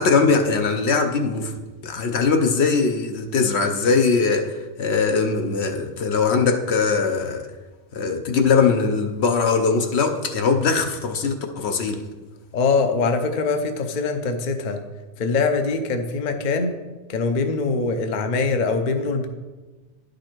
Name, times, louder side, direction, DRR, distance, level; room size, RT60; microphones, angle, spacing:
voice 1, 0.0-7.5 7.9-12.0, left 4 dB, 65° left, 5 dB, 1.0 m, -21 dB
voice 2, 12.5-14.8 15.2-16.7 17.1-19.3, left 4 dB, 45° left, 6 dB, 0.7 m, -23 dB
10.5 x 5.2 x 4.5 m, 1.2 s
omnidirectional pair, 1.2 m